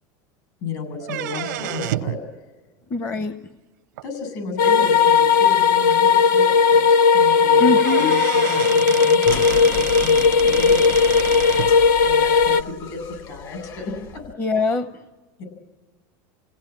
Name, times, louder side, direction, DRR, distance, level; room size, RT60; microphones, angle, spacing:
voice 1, 0.6-2.2 4.0-14.2 15.4-15.5, left 4 dB, 60° left, 8 dB, 7.9 m, -33 dB
sound 1, 1.0-2.2 4.0-4.1 5.0-5.1 5.5-5.6 5.9-6.0 7.4-7.5 7.8-11.7, right 15 dB, 90° right, 0.7 m, -30 dB
voice 2, 2.9-3.3 7.6-8.1 14.4-14.9, left 3 dB, 25° left, 10 dB, 0.8 m, -22 dB
sound 2, 4.6-12.6, left 5 dB, 90° left, 0.8 m, -16 dB
sound 3, 9.3-14.3, left 6 dB, 45° left, 1.7 m, -36 dB
29.0 x 17.0 x 8.7 m, 1.3 s
supercardioid pair, 140°, 10 cm